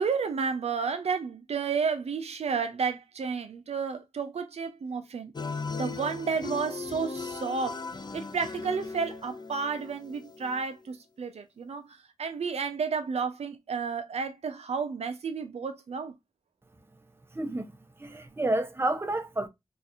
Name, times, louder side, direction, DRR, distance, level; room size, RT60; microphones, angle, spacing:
voice 1, 0.0-5.3 5.8-7.8 8.1-11.8 12.2-16.1, right 5 dB, 80° right, 0.5 m, -31 dB
sound 1, 5.3-10.6, left 4 dB, 40° left, 0.5 m, -38 dB
voice 2, 17.3-17.7 18.0-19.5, right 1 dB, 20° right, 0.6 m, -29 dB
3.8 x 2.4 x 2.7 m
wide cardioid pair, 75°, 11 cm